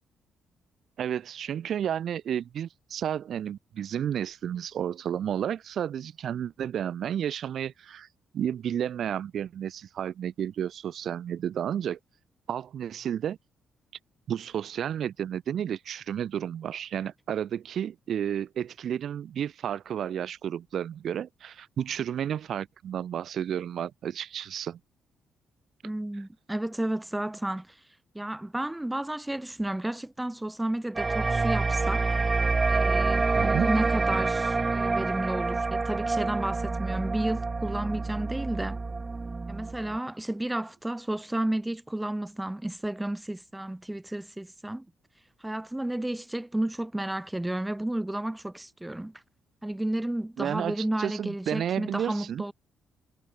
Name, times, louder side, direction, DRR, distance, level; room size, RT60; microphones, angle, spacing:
voice 1, 1.0-8.1 8.3-12.0 12.5-13.4 14.3-24.8 33.3-33.7 50.4-52.4, right 9 dB, 65° right, 3.9 m, -32 dB
voice 2, 25.8-27.8 28.1-32.1 32.7-38.8 39.5-44.9 45.4-49.2 49.6-52.5, right 1 dB, 10° right, 2.3 m, -32 dB
sound 1, 31.0-40.0, right 3 dB, 25° right, 3.8 m, -27 dB
cardioid pair, 90°, 0 cm